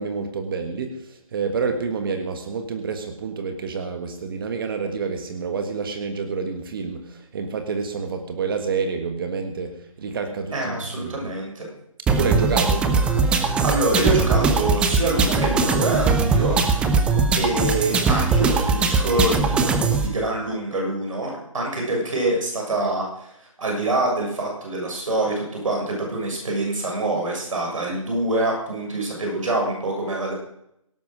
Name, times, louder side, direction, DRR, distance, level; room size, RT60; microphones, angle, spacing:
voice 1, 0.0-11.1 12.1-12.9, right 5 dB, 40° right, 6 dB, 1.6 m, -28 dB
voice 2, 10.5-11.7 13.6-16.6 17.3-19.6 20.0-23.3 23.6-30.3, right 2 dB, 70° right, 0 dB, 6.9 m, -25 dB
sound 1, 12.1-20.1, right 4 dB, 5° right, 0.6 m, -20 dB
17.5 x 10.5 x 6.3 m, 0.77 s
hypercardioid pair, 160°, 18 cm